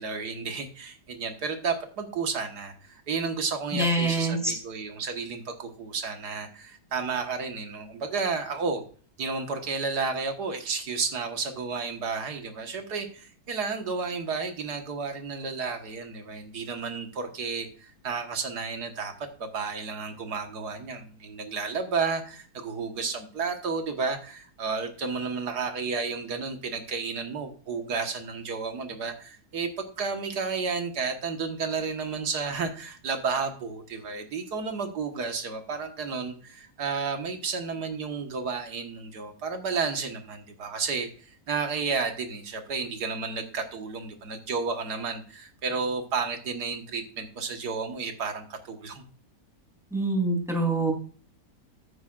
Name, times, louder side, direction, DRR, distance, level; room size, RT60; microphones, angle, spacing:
voice 1, 0.0-8.8 9.2-49.0, right 5 dB, 85° right, 5 dB, 2.0 m, -32 dB
voice 2, 3.7-4.5 49.9-50.9, right 2 dB, ahead, 0 dB, 3.3 m, -25 dB
14.5 x 9.3 x 2.5 m, 0.41 s
omnidirectional pair, 1.7 m